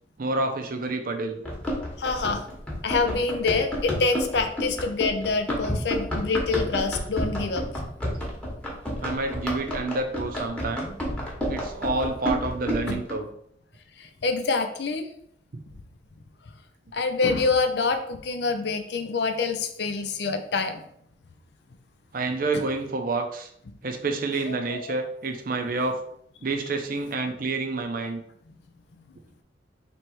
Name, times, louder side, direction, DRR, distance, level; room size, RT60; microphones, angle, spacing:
voice 1, 0.2-1.4 9.0-10.9 11.5-13.3 15.5-15.6 22.1-23.5 23.8-26.0 26.4-28.2, right 3 dB, 50° right, 5 dB, 0.6 m, -28 dB
Run, 1.4-13.1, equal, 5° left, 1.0 m, -31 dB
voice 2, 2.0-2.5 2.8-7.7 12.9-13.0 14.0-15.1 16.9-20.8 24.4-24.9, left 4 dB, 65° left, 6 dB, 0.6 m, -26 dB
3.3 x 3.1 x 4.6 m, 0.68 s
head